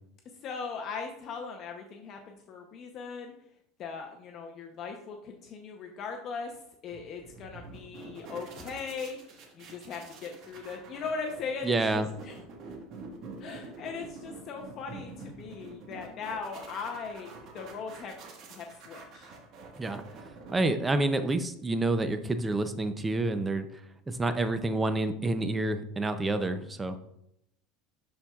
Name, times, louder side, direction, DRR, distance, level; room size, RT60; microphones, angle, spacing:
voice 1, 0.4-3.3 3.8-6.6 6.8-12.4 13.4-18.1 18.5-19.3, left 5 dB, 40° left, 2 dB, 0.7 m, -39 dB
sound 1, 6.9-21.3, right 3 dB, 45° right, 1.4 m, -47 dB
voice 2, 11.6-12.1 19.8-20.0 20.5-23.7 24.1-27.0, right 2 dB, 15° right, 10 dB, 0.5 m, -28 dB
11.0 x 4.3 x 2.3 m, 0.77 s
supercardioid pair, 145°, 0 cm